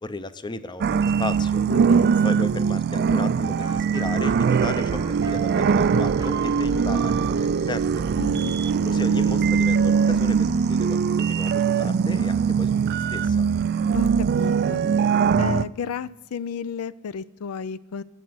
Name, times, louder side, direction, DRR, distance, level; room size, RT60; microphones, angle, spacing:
voice 1, 0.0-1.6 2.2-5.0 5.3-7.8 8.8-12.7 13.1-13.4, left 2 dB, 20° left, 13 dB, 0.6 m, -35 dB
sound 1, 0.8-15.6, right 6 dB, 50° right, 0.3 m, -21 dB
voice 2, 1.7-2.4 8.2-8.5 13.9-14.8 15.3-18.0, left 6 dB, 90° left, 18 dB, 0.4 m, -33 dB
sound 2, 1.8-10.2, right 3 dB, 85° right, 0.7 m, -36 dB
Electric guitar, 3.6-9.2, right 2 dB, 20° right, 0.7 m, -43 dB
13.5 x 7.7 x 7.9 m, 1.0 s
head